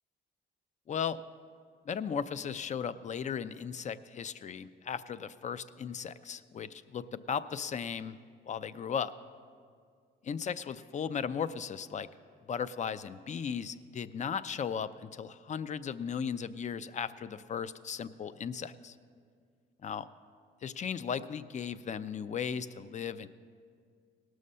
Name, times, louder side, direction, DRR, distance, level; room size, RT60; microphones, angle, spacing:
voice 1, 0.9-1.2 1.9-8.2 8.5-9.1 10.2-12.1 12.5-18.9 19.8-20.0 20.6-23.3, left 7 dB, 35° left, 15 dB, 0.4 m, -36 dB
18.5 x 6.4 x 5.5 m, 2.1 s
cardioid pair, 90°, 20 cm